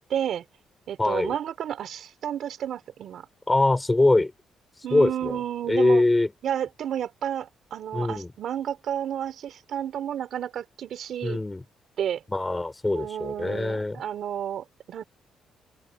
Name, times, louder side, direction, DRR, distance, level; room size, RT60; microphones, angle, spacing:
voice 1, 0.1-0.4 0.9-3.3 4.8-6.0 6.4-11.4 12.0-12.2 12.9-15.0, right 10 dB, 70° right, 3.0 m, -31 dB
voice 2, 1.0-1.3 3.5-4.3 4.9-5.4 5.7-6.3 7.9-8.3 11.2-11.6 12.3-14.0, left 2 dB, 15° left, 3.1 m, -23 dB
open air
cardioid pair, 90°, 0 cm